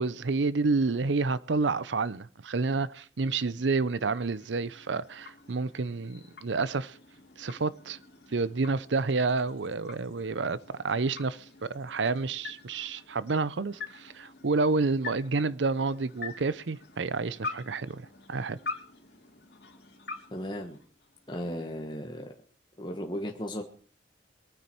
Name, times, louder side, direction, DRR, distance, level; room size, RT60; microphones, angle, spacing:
voice 1, 0.0-7.0 7.4-8.0 8.3-11.4 11.7-18.6, right 3 dB, 85° right, 0.7 m, -29 dB
sound 1, 3.6-21.4, left 4 dB, 65° left, 2.7 m, -46 dB
voice 2, 20.3-20.8 21.3-22.3 22.8-23.6, equal, 25° left, 1.3 m, -35 dB
22.5 x 9.6 x 4.5 m
head